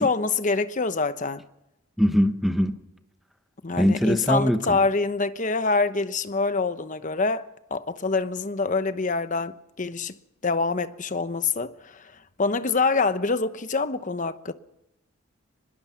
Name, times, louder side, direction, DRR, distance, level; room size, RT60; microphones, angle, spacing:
voice 1, 0.0-1.4 3.6-10.1 10.4-12.1 12.4-14.5, left 4 dB, 40° left, 1.0 m, -25 dB
voice 2, 2.0-2.7 3.8-4.8, equal, ahead, 1.0 m, -22 dB
24.5 x 21.0 x 5.9 m
head